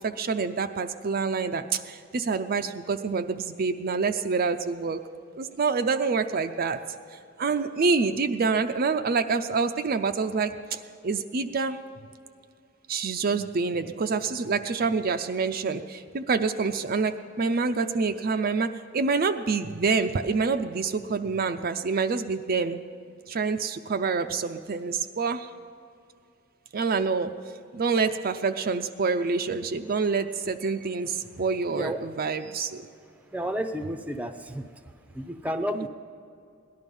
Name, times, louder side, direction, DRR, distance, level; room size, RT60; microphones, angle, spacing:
voice 1, 0.0-5.0 5.4-6.8 7.4-11.8 12.9-22.8 23.3-25.5 26.7-27.3 27.7-32.8 35.7-35.9, right 4 dB, 50° right, 7 dB, 0.5 m, -27 dB
voice 2, 33.3-34.7 35.1-35.9, equal, 5° right, 7 dB, 0.7 m, -31 dB
17.5 x 11.5 x 5.4 m, 2.5 s
head